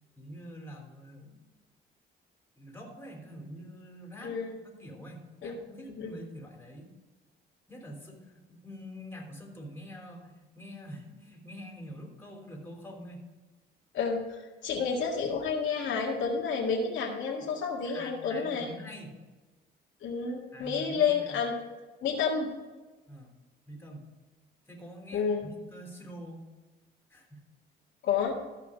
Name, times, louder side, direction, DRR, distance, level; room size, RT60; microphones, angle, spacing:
voice 1, 0.2-1.5 2.6-6.9 7.7-13.3 17.8-19.2 20.5-21.4 23.1-23.3 23.7-24.1 24.7-26.5 27.1-27.5, equal, 10° left, 1 dB, 3.5 m, -46 dB
voice 2, 4.2-4.5 5.4-5.5 5.9-6.1 13.9-18.7 20.0-21.6 22.0-22.5 25.1-25.5 28.0-28.4, left 6 dB, 75° left, -3 dB, 1.9 m, -30 dB
13.5 x 5.7 x 5.1 m, 1.2 s
cardioid pair, 90°, 20 cm